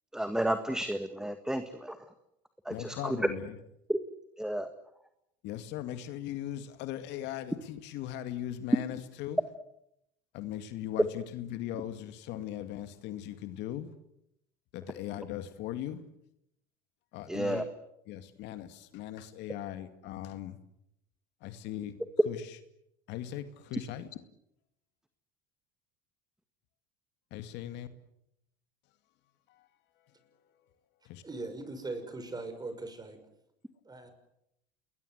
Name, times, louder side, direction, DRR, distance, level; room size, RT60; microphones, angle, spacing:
voice 1, 0.1-2.1 2.6-3.3 3.9-4.0 4.4-4.7 17.3-17.6, right 1 dB, 5° right, 9 dB, 1.7 m, -32 dB
voice 2, 2.7-3.5 5.4-9.4 10.3-13.9 14.7-16.0 17.1-17.7 18.1-20.6 21.4-21.9 22.3-22.4 23.1-24.1 27.3-27.9 29.5-29.7 31.0-31.2, left 12 dB, 65° left, 10 dB, 2.2 m, -39 dB
voice 3, 31.2-33.2 33.8-34.1, right 2 dB, 20° right, 9 dB, 6.0 m, -40 dB
28.0 x 21.0 x 8.0 m, 0.78 s
supercardioid pair, 95°, 20 cm